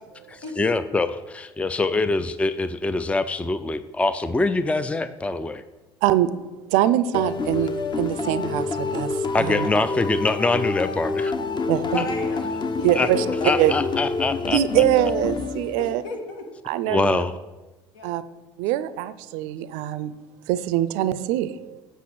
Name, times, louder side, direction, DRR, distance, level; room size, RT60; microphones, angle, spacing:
voice 1, 0.3-5.6 9.3-11.3 12.9-13.1 13.4-14.8 16.9-17.3, left 3 dB, 10° left, 0.4 m, -24 dB
voice 2, 6.0-6.3 6.7-9.7 11.7-12.1 12.8-13.3 13.6-13.7 14.5-16.0 16.6-17.2 18.0-18.2 18.6-20.1 20.5-21.8, right 13 dB, 65° right, 0.5 m, -23 dB
sound 1, 7.1-16.1, left 4 dB, 35° left, 1.0 m, -27 dB
voice 3, 11.8-13.6 15.8-16.4 17.9-18.1, left 2 dB, 70° left, 1.6 m, -33 dB
8.2 x 5.4 x 6.1 m
hypercardioid pair, 65°, 14 cm